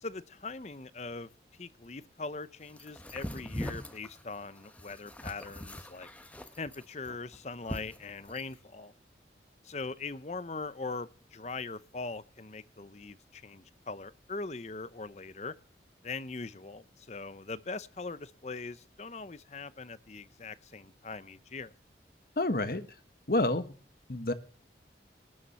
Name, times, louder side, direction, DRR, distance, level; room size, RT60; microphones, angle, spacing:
voice 1, 0.0-1.3 1.6-6.1 6.6-8.9 9.6-15.5 16.0-21.7, left 3 dB, 40° left, 16 dB, 0.7 m, -41 dB
sound 1, 2.7-8.5, equal, 10° left, 1.2 m, -42 dB
voice 2, 22.4-22.9 23.3-23.8 24.1-24.3, left 2 dB, 55° left, 11 dB, 1.2 m, -28 dB
19.0 x 7.2 x 6.8 m, 0.41 s
head